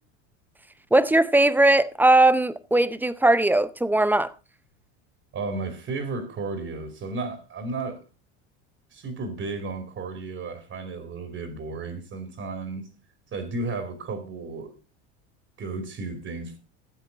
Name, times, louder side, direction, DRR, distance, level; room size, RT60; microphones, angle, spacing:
voice 1, 0.9-4.3, right 2 dB, 5° right, 0.6 m, -19 dB
voice 2, 5.3-8.0 8.9-12.9 13.3-14.7 15.6-16.6, right 3 dB, 35° right, 2.7 m, -33 dB
13.5 x 8.0 x 3.9 m
supercardioid pair, 105°, 36 cm